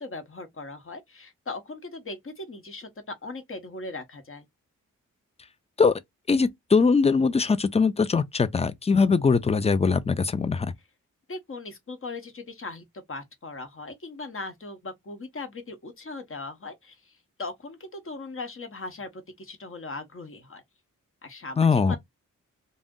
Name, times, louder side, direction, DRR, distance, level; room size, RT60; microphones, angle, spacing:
voice 1, 0.0-4.5 11.3-20.6 21.2-22.0, left 3 dB, 40° left, 0.9 m, -39 dB
voice 2, 6.3-10.7 21.6-22.0, left 5 dB, 20° left, 0.4 m, -21 dB
2.6 x 2.1 x 3.6 m
cardioid pair, 75°, 33 cm